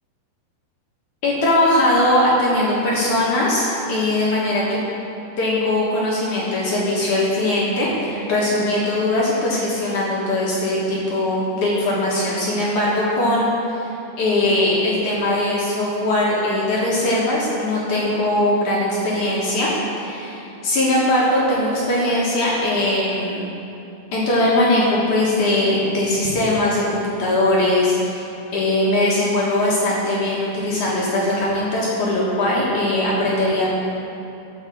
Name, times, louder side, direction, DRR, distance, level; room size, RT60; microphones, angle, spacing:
voice 1, 1.2-4.8 5.4-13.9 14.2-19.7 20.0-23.5 24.1-28.2 28.5-33.7, left 1 dB, 65° left, -6 dB, 2.0 m, -20 dB
14.0 x 5.9 x 6.8 m, 2.9 s
omnidirectional pair, 5.8 m